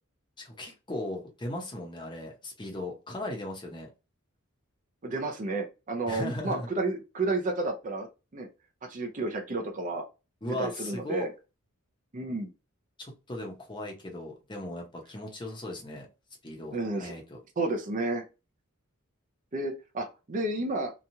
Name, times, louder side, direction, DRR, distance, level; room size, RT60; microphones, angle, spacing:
voice 1, 0.4-3.9 6.1-6.7 10.4-11.3 13.0-16.1 16.4-17.4, left 1 dB, 20° left, 0 dB, 0.7 m, -37 dB
voice 2, 5.0-8.1 8.3-8.5 8.9-10.0 10.5-11.3 12.1-12.5 16.7-17.1 17.6-18.2 19.5-20.9, right 2 dB, 35° right, 3 dB, 0.5 m, -31 dB
2.9 x 2.3 x 2.7 m, 0.29 s
head